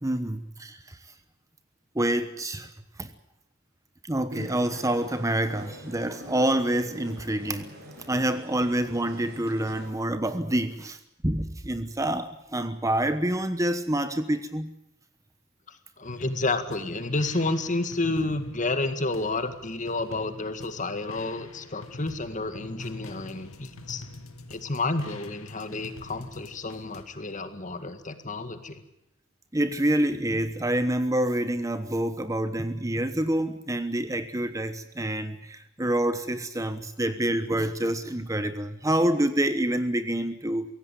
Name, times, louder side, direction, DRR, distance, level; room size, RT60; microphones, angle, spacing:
voice 1, 0.0-1.0 1.9-2.7 3.0-3.1 4.1-7.7 8.1-11.0 11.2-14.7 29.5-40.7, right 1 dB, 15° right, 10 dB, 1.1 m, -27 dB
sound 1, 4.3-9.9, equal, 50° right, 7.6 m, -44 dB
voice 2, 15.7-24.0 24.5-28.8, left 2 dB, 35° left, 9 dB, 2.0 m, -30 dB
sound 2, 16.0-27.0, left 2 dB, 85° left, 2.3 m, -45 dB
24.0 x 17.0 x 9.2 m, 0.85 s
head